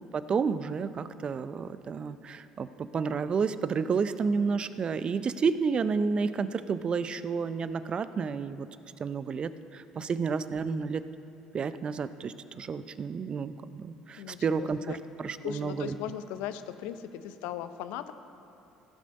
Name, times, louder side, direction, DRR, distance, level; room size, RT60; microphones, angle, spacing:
voice 1, 0.1-8.7 9.0-11.1 11.5-16.0, right 5 dB, 40° right, 13 dB, 0.5 m, -31 dB
voice 2, 14.2-15.0 15.4-18.1, left 11 dB, 70° left, 11 dB, 0.6 m, -38 dB
16.0 x 7.5 x 5.3 m, 2.8 s
hypercardioid pair, 65°, 3 cm